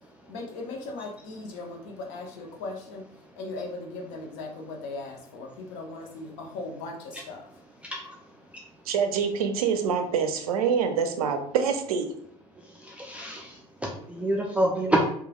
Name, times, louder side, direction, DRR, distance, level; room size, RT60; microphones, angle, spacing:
voice 1, 0.3-3.0 3.4-7.5, left 3 dB, 55° left, 1 dB, 0.7 m, -38 dB
voice 2, 8.9-12.1, right 6 dB, 70° right, 6 dB, 0.5 m, -25 dB
voice 3, 12.8-13.5 13.8-15.0, right 1 dB, 5° right, -2 dB, 0.3 m, -26 dB
3.1 x 2.3 x 2.3 m, 0.65 s
figure-of-eight pair, 70°, 20 cm